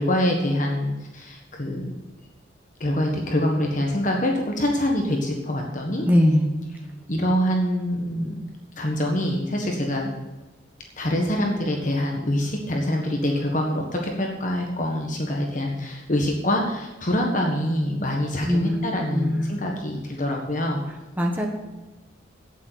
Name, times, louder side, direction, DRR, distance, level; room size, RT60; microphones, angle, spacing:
voice 1, 0.0-1.9 2.8-6.1 7.1-8.4 8.8-10.1 11.0-20.8, left 1 dB, 40° left, 1 dB, 1.5 m, -25 dB
voice 2, 6.1-6.5 18.5-18.8 19.1-19.4 21.2-21.5, left 1 dB, 10° right, 0 dB, 1.4 m, -20 dB
8.8 x 8.4 x 8.5 m, 1.1 s
head